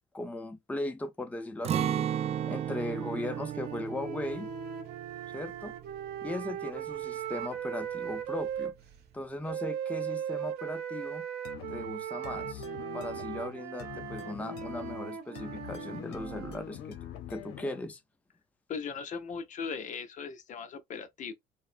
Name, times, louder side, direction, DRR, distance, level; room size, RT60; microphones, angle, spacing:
voice 1, 0.1-2.1 2.5-4.5 5.3-5.7 6.2-8.7 9.1-11.2 11.7-12.7 12.9-17.0 17.3-18.0, left 2 dB, 10° left, 0.6 m, -38 dB
Acoustic guitar, 1.6-7.5 7.9-8.0 8.5-9.0, right 10 dB, 40° right, 0.4 m, -36 dB
sound 1, 1.8-8.7 9.5-16.6, right 9 dB, 75° right, 0.7 m, -38 dB
sound 2, 11.4-17.9, left 9 dB, 85° left, 0.8 m, -44 dB
voice 2, 18.7-21.3, left 6 dB, 50° left, 0.7 m, -38 dB
4.6 x 2.1 x 2.5 m
cardioid pair, 110°, 17 cm